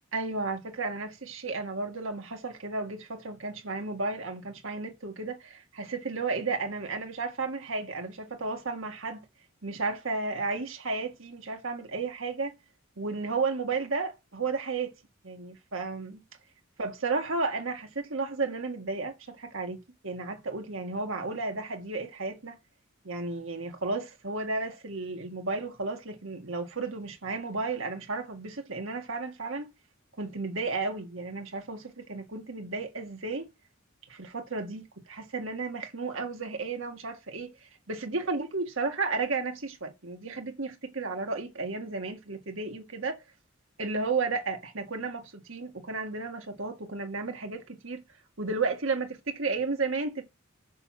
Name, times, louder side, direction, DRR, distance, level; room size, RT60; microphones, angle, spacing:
voice 1, 0.1-9.2 9.6-12.5 13.0-14.9 15.2-16.2 16.8-22.6 23.0-29.7 30.2-33.5 34.1-43.2 43.8-48.0 48.4-50.2, right 3 dB, 70° right, 1.8 m, -33 dB
6.8 x 6.0 x 6.1 m
head